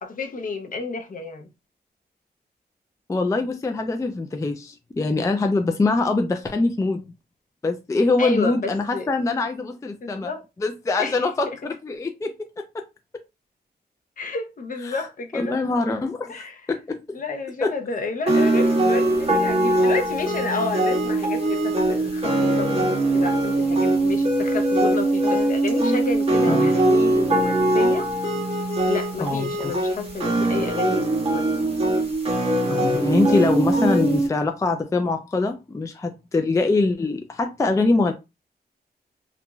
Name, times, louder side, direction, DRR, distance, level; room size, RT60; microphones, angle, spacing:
voice 1, 0.0-1.5 8.2-9.1 10.0-10.4 11.0-11.6 11.9-12.0 14.2-15.6 16.3-16.6 17.1-28.1 28.8-31.5, left 3 dB, 50° left, 0.6 m, -30 dB
voice 2, 3.1-7.0 7.6-10.3 10.6-12.8 14.9-15.0 15.3-17.2 17.6-17.7 26.5-26.7 29.2-29.7 32.7-38.1, left 3 dB, 20° left, 0.3 m, -23 dB
sound 1, 18.3-34.3, right 1 dB, 35° right, 1.3 m, -21 dB
3.0 x 2.5 x 2.2 m
wide cardioid pair, 95°, 17 cm